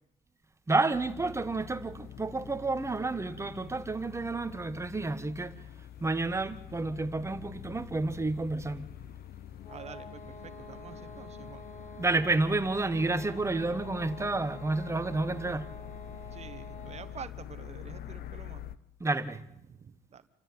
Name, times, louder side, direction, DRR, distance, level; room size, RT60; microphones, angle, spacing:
voice 1, 0.7-5.6 6.0-8.9 12.0-15.7 19.0-19.4, right 3 dB, 15° right, 1.4 m, -30 dB
helicopter over courtyard Dresden Kunsthaus, 0.9-18.8, left 11 dB, 65° left, 1.0 m, -46 dB
sound 1, 9.6-17.3, left 2 dB, 45° left, 4.5 m, -48 dB
voice 2, 9.7-11.7 16.3-18.6 19.7-20.2, right 7 dB, 40° right, 1.4 m, -47 dB
28.5 x 13.0 x 9.6 m
cardioid pair, 110°, 17 cm